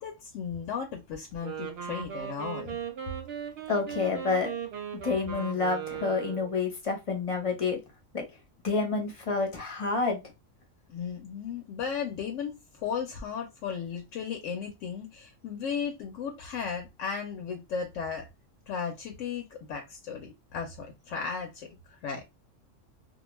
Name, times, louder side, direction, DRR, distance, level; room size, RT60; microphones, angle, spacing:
voice 1, 0.0-2.8 10.9-18.3 18.7-22.2, left 6 dB, 75° left, 0.9 m, -35 dB
Wind instrument woodwind instrument, 1.3-6.6, right 8 dB, 55° right, 0.8 m, -38 dB
voice 2, 3.7-4.5 5.0-7.8 8.1-8.2 8.6-10.2, left 4 dB, 30° left, 0.7 m, -28 dB
2.4 x 2.2 x 3.0 m
omnidirectional pair, 1.3 m